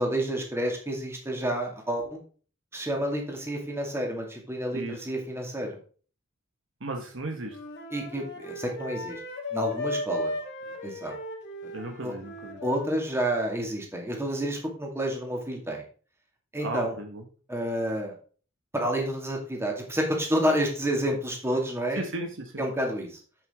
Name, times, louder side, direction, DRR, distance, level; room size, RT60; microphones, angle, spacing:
voice 1, 0.0-2.2 2.7-5.8 7.9-9.2 9.5-10.3 10.8-11.1 11.6-11.7 12.0-12.1 12.6-15.8 16.5-17.0 17.5-18.2 18.7-22.0 22.6-23.2, right 1 dB, 10° right, 1 dB, 2.2 m, -29 dB
voice 2, 6.8-7.6 11.7-12.6 16.6-17.2 21.9-22.6, right 2 dB, 65° right, 4 dB, 1.5 m, -35 dB
Wind instrument woodwind instrument, 7.5-13.0, left 2 dB, 55° left, 2.0 m, -36 dB
8.0 x 7.3 x 3.6 m, 0.40 s
head